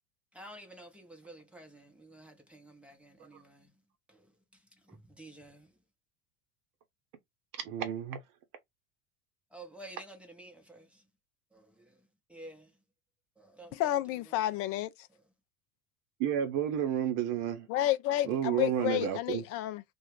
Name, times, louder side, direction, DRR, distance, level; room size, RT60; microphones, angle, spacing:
voice 1, 0.3-3.7 4.1-4.2 4.9-5.7 9.5-11.0 11.5-11.9 12.3-12.7 13.4-13.7, right 1 dB, 5° right, 0.8 m, -51 dB
voice 2, 7.6-8.2 16.2-17.7 18.2-19.4, right 9 dB, 45° right, 0.9 m, -31 dB
voice 3, 13.7-14.9 17.7-19.8, left 14 dB, 35° left, 0.4 m, -30 dB
2.4 x 2.3 x 3.2 m
figure-of-eight pair, 75°, 44 cm